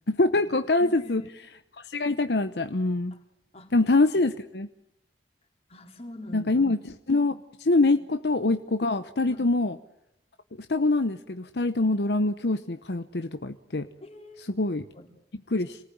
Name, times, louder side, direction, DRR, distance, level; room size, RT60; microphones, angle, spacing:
voice 1, 0.1-1.5 1.8-3.2 3.7-4.7 6.3-9.7 10.7-13.9 14.4-14.8 15.5-15.8, left 2 dB, 65° left, 9 dB, 0.9 m, -25 dB
voice 2, 0.8-1.3 3.5-3.7 5.7-6.5 7.8-7.9 9.3-9.5 14.0-14.5 15.0-15.1, left 1 dB, 35° left, 3 dB, 4.0 m, -43 dB
26.5 x 19.0 x 9.4 m, 0.83 s
head